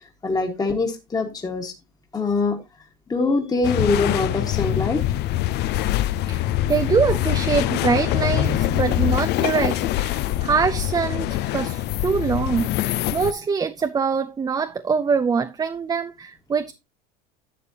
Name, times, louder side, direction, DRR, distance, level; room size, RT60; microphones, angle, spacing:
voice 1, 0.2-1.7 2.1-2.6 3.1-5.0 6.4-6.5 8.4-8.6 10.2-10.5, left 3 dB, 20° left, 1.6 m, -24 dB
sound 1, 3.6-13.3, left 14 dB, 55° left, 0.6 m, -24 dB
voice 2, 6.7-16.7, right 5 dB, 20° right, 0.5 m, -24 dB
11.5 x 7.2 x 2.8 m
supercardioid pair, 110°, 21 cm